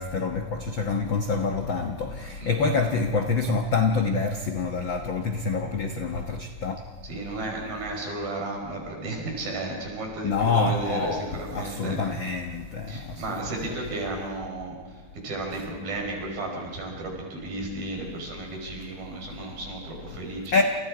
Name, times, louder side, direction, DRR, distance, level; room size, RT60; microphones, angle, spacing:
voice 1, 0.0-6.8 10.2-11.3 11.5-13.2 20.5-20.6, left 4 dB, 70° left, 4 dB, 1.1 m, -26 dB
voice 2, 2.4-2.9 7.0-12.0 12.9-20.6, right 2 dB, 90° right, 0 dB, 6.7 m, -34 dB
29.0 x 28.0 x 4.9 m, 1.4 s
omnidirectional pair, 4.1 m